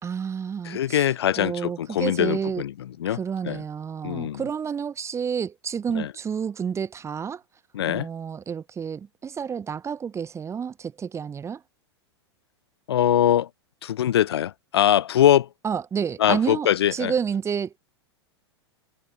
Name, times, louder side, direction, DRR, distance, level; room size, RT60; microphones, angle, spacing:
voice 1, 0.0-1.1 1.4-2.6 3.1-7.4 7.9-11.6 15.6-17.8, right 7 dB, 20° right, 2.5 m, -30 dB
voice 2, 0.6-2.7 3.0-3.2 3.4-3.6 4.0-4.4 5.9-6.1 7.7-8.1 12.9-13.5 13.8-15.5 16.2-17.1, left 11 dB, 65° left, 1.6 m, -22 dB
figure-of-eight pair, 95°, 14 cm